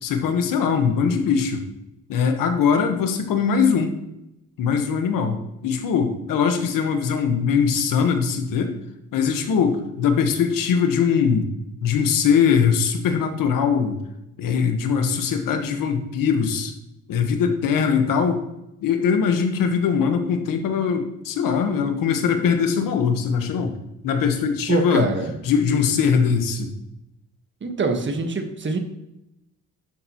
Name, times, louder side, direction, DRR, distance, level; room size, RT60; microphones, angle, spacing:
voice 1, 0.0-1.6 2.1-3.9 4.6-8.8 9.1-11.5 11.8-14.0 14.4-16.7 17.1-18.4 18.8-23.7 24.0-25.1 25.4-26.7, left 6 dB, 75° left, 6 dB, 1.4 m, -21 dB
voice 2, 24.7-25.4 27.6-28.8, right 4 dB, 35° right, 6 dB, 1.4 m, -24 dB
11.5 x 6.8 x 3.0 m, 0.86 s
cardioid pair, 90°, 33 cm